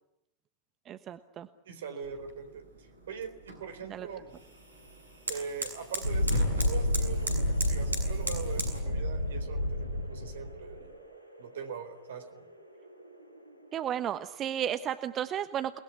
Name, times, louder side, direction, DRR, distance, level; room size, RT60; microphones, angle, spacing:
voice 1, 0.9-1.5 3.9-4.1 13.7-15.8, right 10 dB, 30° right, 11 dB, 1.1 m, -33 dB
voice 2, 1.6-4.3 5.3-11.1 11.4-12.4, right 6 dB, 60° right, 9 dB, 4.1 m, -42 dB
sound 1, 2.0-8.8, right 1 dB, 75° right, 7.1 m, -39 dB
Thunderstorm, 6.0-13.5, left 1 dB, 85° left, 4.1 m, -31 dB
29.5 x 20.5 x 9.5 m, 0.83 s
figure-of-eight pair, 90°, 0 cm